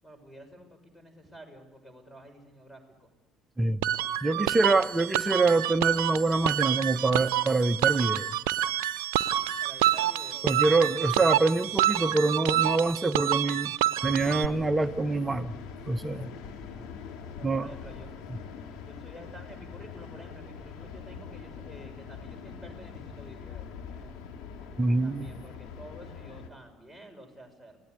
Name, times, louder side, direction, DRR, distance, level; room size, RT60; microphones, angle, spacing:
voice 1, 0.0-3.1 4.3-4.9 9.6-11.0 17.3-18.1 18.8-24.2 25.0-27.8, equal, 10° left, 7 dB, 6.8 m, -50 dB
sound 1, 3.8-14.5, right 12 dB, 65° right, 0.8 m, -28 dB
voice 2, 4.2-8.3 10.4-13.7 14.0-15.6 15.9-16.3 17.4-17.7 18.3-18.4 24.8-25.3, right 3 dB, 15° right, 13 dB, 1.0 m, -25 dB
sound 2, 14.0-26.5, left 6 dB, 55° left, 3.2 m, -43 dB
29.5 x 18.0 x 8.3 m, 1.1 s
figure-of-eight pair, 55°, 0 cm